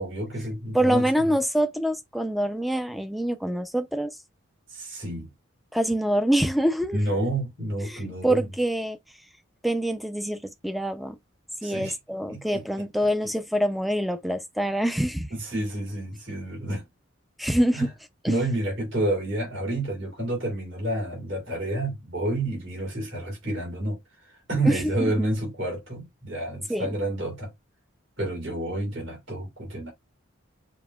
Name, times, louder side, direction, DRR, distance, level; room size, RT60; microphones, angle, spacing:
voice 1, 0.0-1.1 4.7-5.3 6.9-8.5 11.6-11.9 12.3-12.6 13.0-13.3 15.3-16.8 17.7-17.9 18.3-24.0 24.5-27.5 28.2-29.9, right 1 dB, 60° right, 3.3 m, -29 dB
voice 2, 0.7-4.1 5.7-7.0 7.9-9.0 9.6-11.2 11.6-15.3 17.4-17.9 18.2-18.3 24.6-25.3 26.7-26.9, right 1 dB, ahead, 0.4 m, -25 dB
6.9 x 2.8 x 2.3 m
head